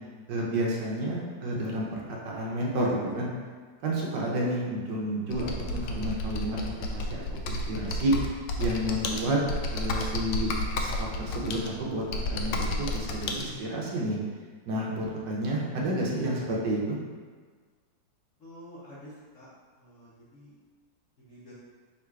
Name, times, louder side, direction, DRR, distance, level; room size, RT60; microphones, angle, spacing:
voice 1, 0.3-3.3 3.8-8.2 8.6-9.4 9.7-10.5 10.8-12.0 12.3-14.2 14.7-17.0, right 1 dB, 70° right, -3 dB, 1.3 m, -30 dB
Computer keyboard, 5.3-13.4, left 2 dB, 75° left, 1.2 m, -32 dB
voice 2, 18.4-19.5 19.8-20.5 21.2-21.5, equal, 55° left, -8 dB, 0.9 m, -49 dB
3.7 x 3.0 x 4.6 m, 1.5 s
omnidirectional pair, 2.1 m